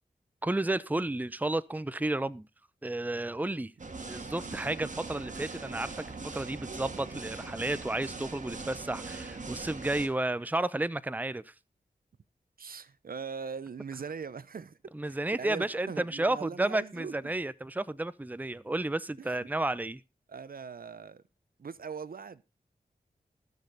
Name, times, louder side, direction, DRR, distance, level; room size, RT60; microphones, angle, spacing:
voice 1, 0.4-2.5 2.8-3.7 4.1-11.5 14.9-20.0, right 2 dB, 10° right, 0.7 m, -32 dB
sound 1, 3.8-10.1, right 3 dB, 55° right, 2.0 m, -41 dB
voice 2, 12.6-14.8 15.1-17.1 19.2-19.5 20.3-21.2 21.6-22.4, right 5 dB, 70° right, 0.8 m, -41 dB
20.0 x 6.6 x 4.0 m
wide cardioid pair, 65°, 16 cm